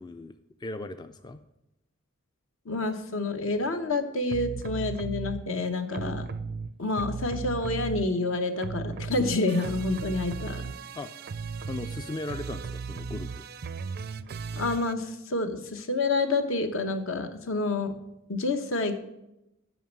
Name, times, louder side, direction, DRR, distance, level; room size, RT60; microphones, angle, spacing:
voice 1, 0.0-1.4 10.9-11.1 11.7-13.4, left 2 dB, 20° left, 10 dB, 0.3 m, -38 dB
voice 2, 2.7-6.3 6.8-10.7 14.5-17.9 18.3-18.9, left 2 dB, 70° left, 7 dB, 1.0 m, -28 dB
sound 1, 4.3-5.4 5.9-8.3 8.6-14.9, right 5 dB, 50° right, 0.4 m, -36 dB
9.2 x 5.3 x 7.4 m, 0.88 s
head